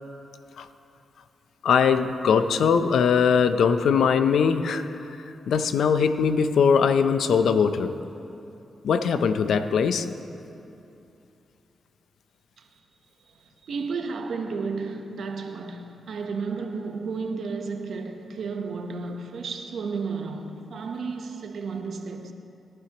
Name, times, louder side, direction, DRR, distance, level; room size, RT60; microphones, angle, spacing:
voice 1, 1.6-5.2 5.5-7.9 8.8-10.1, left 6 dB, 80° left, 0.6 m, -21 dB
voice 2, 13.4-22.3, right 4 dB, 75° right, 0.9 m, -32 dB
21.5 x 11.5 x 2.9 m
cardioid pair, 60°, 0 cm